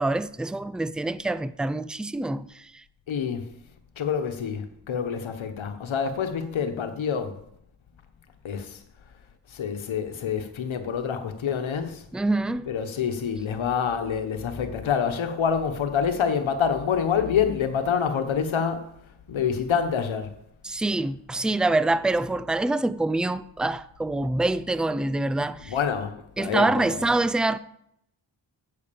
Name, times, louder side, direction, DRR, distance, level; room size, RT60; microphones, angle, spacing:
voice 1, 0.0-2.6 12.1-12.7 20.6-25.7 26.4-27.6, right 2 dB, ahead, 0.3 m, -25 dB
voice 2, 3.1-3.4 4.0-7.3 8.4-8.8 9.5-12.0 12.7-19.0 19.3-20.3 25.6-27.1, left 7 dB, 90° left, 1.2 m, -27 dB
8.6 x 7.9 x 6.9 m
cardioid pair, 75°, 46 cm